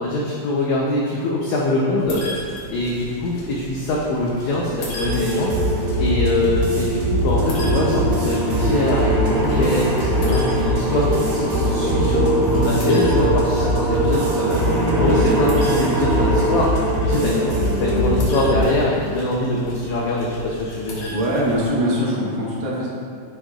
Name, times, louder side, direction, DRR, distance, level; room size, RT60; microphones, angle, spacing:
voice 1, 0.0-5.5 6.0-21.1, left 2 dB, 85° left, -4 dB, 1.6 m, -23 dB
sound 1, 2.0-21.7, equal, 65° left, 2.0 m, -37 dB
sound 2, 5.0-18.7, right 1 dB, 90° right, 3.0 m, -21 dB
sound 3, 7.3-16.6, right 1 dB, 50° right, 2.0 m, -26 dB
voice 2, 21.1-22.9, equal, 70° right, -5 dB, 2.5 m, -22 dB
7.8 x 6.2 x 2.3 m, 2.2 s
omnidirectional pair, 4.0 m